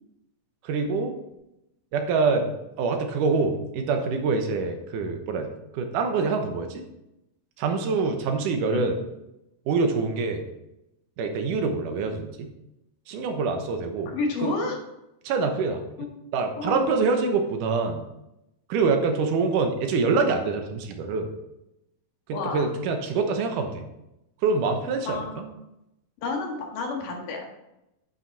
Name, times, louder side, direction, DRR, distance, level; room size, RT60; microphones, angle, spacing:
voice 1, 0.6-1.1 1.9-2.5 2.8-6.7 7.6-9.0 9.7-10.5 11.2-12.5 13.1-14.1 14.4-14.6 15.2-15.8 16.3-18.0 18.7-21.3 22.3-23.8 24.4-25.2, right 4 dB, 90° right, 5 dB, 2.6 m, -25 dB
voice 2, 14.1-14.8 16.0-16.2 16.6-17.0 22.3-22.6 25.1-25.5 26.2-27.5, left 3 dB, 90° left, 0 dB, 3.2 m, -30 dB
10.5 x 5.9 x 4.1 m, 0.89 s
omnidirectional pair, 3.6 m